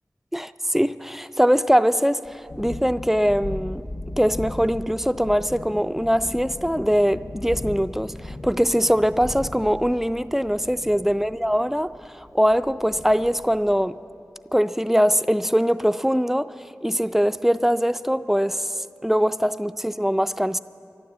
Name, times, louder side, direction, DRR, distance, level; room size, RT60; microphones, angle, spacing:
voice 1, 0.3-3.8 4.2-14.0 14.5-16.5 16.8-18.7 19.0-20.6, equal, 5° right, 13 dB, 0.3 m, -22 dB
Thunderstorm, 2.2-13.8, left 1 dB, 65° left, 0.7 m, -38 dB
12.0 x 12.0 x 8.1 m, 2.6 s
wide cardioid pair, 50°, 6 cm